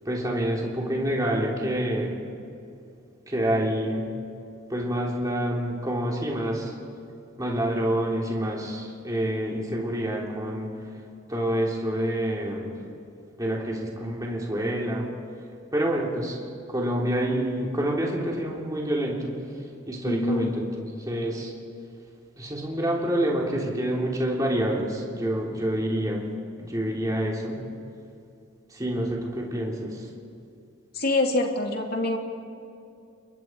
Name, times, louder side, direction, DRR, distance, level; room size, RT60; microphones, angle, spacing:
voice 1, 0.1-2.2 3.3-4.1 4.7-6.7 7.4-10.7 11.3-12.7 13.4-15.1 15.7-16.4 16.7-19.4 19.9-21.5 22.4-26.2 26.6-27.6 28.7-30.1, right 1 dB, 20° right, -3 dB, 3.5 m, -27 dB
voice 2, 20.1-20.5 30.9-32.2, left 2 dB, 50° left, 2 dB, 2.7 m, -25 dB
29.5 x 23.0 x 4.7 m, 2.6 s
head